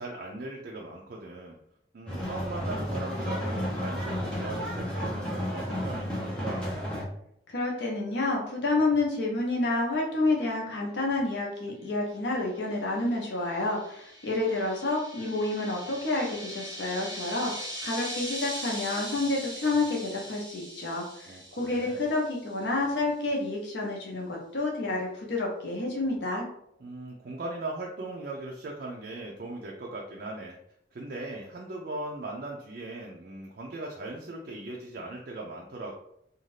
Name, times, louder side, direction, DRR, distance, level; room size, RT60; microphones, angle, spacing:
voice 1, 0.0-1.6 1.9-6.7 21.3-22.0 26.8-30.6 30.9-36.0, right 2 dB, 55° right, -1 dB, 0.4 m, -39 dB
sound 1, 2.1-7.0, equal, 5° left, 0.6 m, -32 dB
voice 2, 7.5-26.5, left 2 dB, 75° left, -1 dB, 0.7 m, -29 dB
sound 2, 12.8-22.6, equal, 25° right, 1.0 m, -41 dB
2.6 x 2.3 x 3.2 m, 0.74 s
head